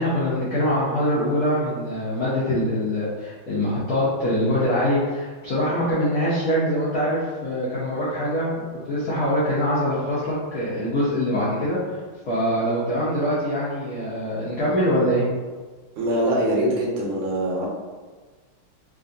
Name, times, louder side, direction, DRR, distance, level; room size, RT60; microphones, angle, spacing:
voice 1, 0.0-11.8 12.3-15.2, equal, 85° left, -9 dB, 0.7 m, -23 dB
voice 2, 16.0-17.7, right 1 dB, 85° right, -3 dB, 1.6 m, -23 dB
3.5 x 2.3 x 2.5 m, 1.4 s
omnidirectional pair, 2.4 m